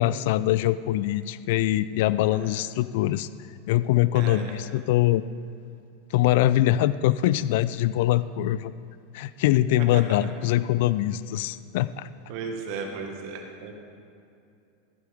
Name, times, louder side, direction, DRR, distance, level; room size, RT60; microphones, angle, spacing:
voice 1, 0.0-3.3 3.7-5.2 6.1-8.7 9.1-12.1, left 14 dB, 65° left, 16 dB, 0.3 m, -23 dB
voice 2, 4.1-4.5 9.9-10.0 12.3-13.7, right 5 dB, 60° right, 3 dB, 1.7 m, -35 dB
15.0 x 9.0 x 3.6 m, 2.5 s
hypercardioid pair, 100°, 0 cm